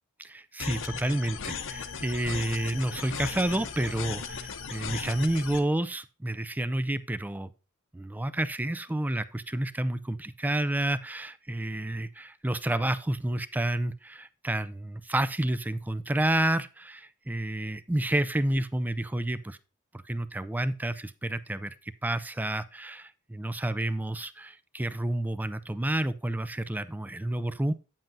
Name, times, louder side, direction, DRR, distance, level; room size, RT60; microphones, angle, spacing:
voice 1, 0.2-7.5 7.9-19.6 20.0-27.7, right 1 dB, 10° right, 14 dB, 0.3 m, -30 dB
sound 1, 0.6-5.6, left 5 dB, 60° left, 0.8 m, -37 dB
8.9 x 7.5 x 2.6 m, 0.32 s
head